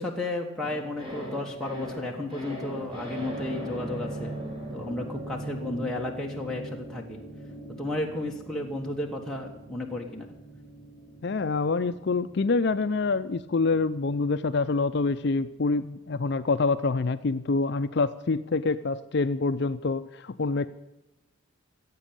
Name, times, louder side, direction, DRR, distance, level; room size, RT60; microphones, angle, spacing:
voice 1, 0.0-4.3 4.7-7.2 7.8-10.3, left 2 dB, 5° left, -2 dB, 1.4 m, -33 dB
sound 1, 0.6-16.9 17.2-17.3, right 1 dB, 25° right, 4.5 m, -41 dB
voice 2, 11.2-20.7, left 3 dB, 55° left, 11 dB, 0.5 m, -26 dB
16.5 x 8.3 x 8.7 m, 1.0 s
head